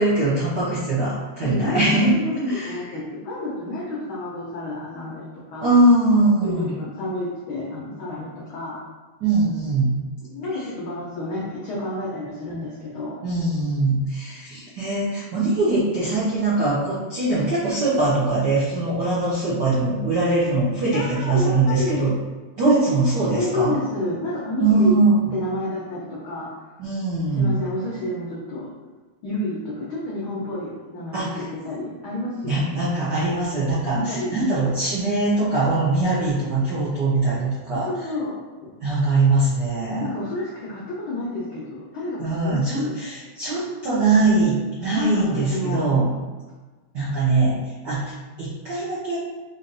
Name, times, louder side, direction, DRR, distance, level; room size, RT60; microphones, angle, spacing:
voice 1, 0.0-3.0 5.6-6.7 9.2-10.0 10.5-10.6 13.2-22.1 22.6-23.8 24.6-25.2 26.8-27.5 31.1-31.4 32.4-37.9 38.8-40.1 42.2-46.1 46.9-49.2, right 2 dB, 80° right, -8 dB, 0.9 m, -21 dB
voice 2, 1.4-5.7 6.4-8.8 10.2-13.2 20.9-22.1 23.3-25.0 25.3-26.5 27.3-28.7 29.2-32.6 33.9-34.3 37.8-38.4 39.9-42.9 44.9-46.0, left 2 dB, 80° left, -5 dB, 1.1 m, -30 dB
5.0 x 2.7 x 3.9 m, 1.3 s
omnidirectional pair, 3.3 m